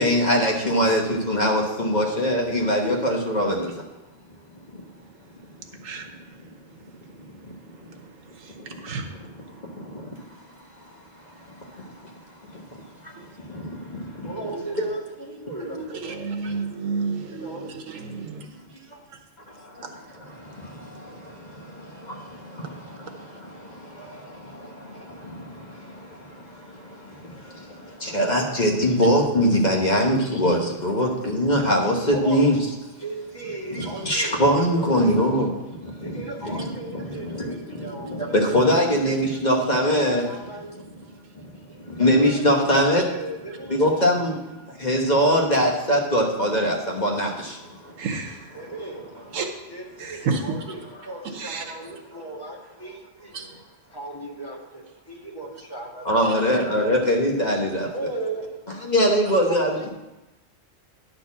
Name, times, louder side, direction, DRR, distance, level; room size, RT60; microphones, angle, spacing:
voice 1, 0.0-3.7 7.4-7.5 8.7-8.8 9.2-10.1 11.4-12.1 12.5-14.3 14.8-15.0 15.7-16.1 19.5-32.6 33.7-40.9 41.3-41.4 41.8-43.0 43.7-44.4 44.6-48.0 56.0-57.9 58.8-59.9, equal, 35° left, 0 dB, 1.3 m, -23 dB
voice 2, 8.3-9.1 14.5-14.8 16.0-18.2 48.0-48.4 49.3-49.5 50.0-50.6 51.3-51.7 53.3-53.5, right 4 dB, 85° right, 5 dB, 1.4 m, -30 dB
voice 3, 14.2-16.2 17.3-17.6 32.1-32.5 33.0-34.9 36.0-38.9 39.8-40.8 42.0-43.7 48.5-49.1 49.7-53.3 53.9-56.4 57.9-58.5 59.4-59.9, right 2 dB, 20° left, -4 dB, 1.8 m, -36 dB
10.5 x 4.3 x 7.1 m, 1.0 s
omnidirectional pair, 1.3 m